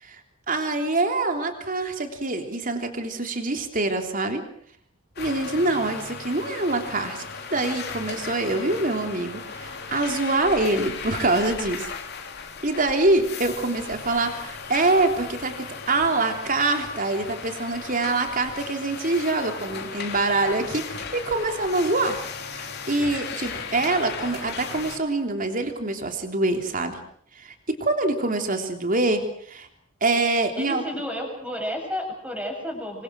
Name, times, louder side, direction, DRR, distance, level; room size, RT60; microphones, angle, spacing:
voice 1, 0.5-4.4 5.2-7.2 7.5-11.9 12.6-22.2 22.5-27.0 27.3-29.7 30.0-30.8, right 2 dB, 40° right, 5 dB, 3.4 m, -25 dB
sound 1, 5.2-25.0, left 5 dB, 50° left, 3.3 m, -36 dB
voice 2, 30.6-33.0, equal, 5° right, 2 dB, 7.4 m, -31 dB
28.0 x 24.0 x 6.3 m, 0.62 s
head